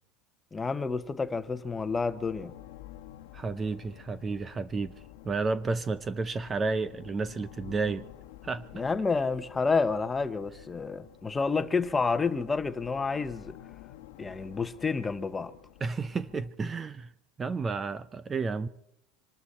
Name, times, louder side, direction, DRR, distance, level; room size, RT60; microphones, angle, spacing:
voice 1, 0.5-2.5 8.7-13.6 14.2-15.5, left 4 dB, 15° left, 1.0 m, -29 dB
sound 1, 0.8-16.5, left 13 dB, 85° left, 1.2 m, -51 dB
voice 2, 3.3-4.9 5.2-8.0 8.4-8.7 15.8-17.1 17.4-18.7, right 4 dB, 20° right, 0.6 m, -31 dB
25.5 x 12.5 x 4.3 m
supercardioid pair, 130°, 0 cm